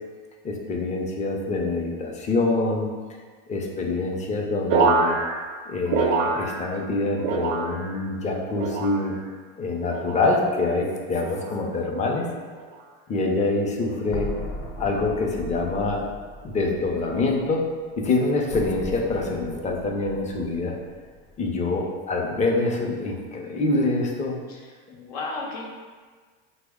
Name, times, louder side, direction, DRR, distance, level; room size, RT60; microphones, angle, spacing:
voice 1, 0.4-2.9 3.5-5.2 5.7-9.2 9.6-12.3 13.1-14.3 14.8-16.0 16.4-17.7 18.0-20.8 21.4-24.4, left 3 dB, 25° left, 0 dB, 0.4 m, -25 dB
sound 1, 4.7-6.9 7.2-8.1 8.6-9.3 9.9-10.3 11.2-11.6 12.5-12.8, right 4 dB, 70° right, 0.4 m, -26 dB
sound 2, 14.1-18.1 18.5-21.9, left 1 dB, 55° left, 0.8 m, -38 dB
voice 2, 24.5-25.7, left 3 dB, 85° left, -2 dB, 0.7 m, -35 dB
3.3 x 2.0 x 3.5 m, 1.5 s
supercardioid pair, 115°, 30 cm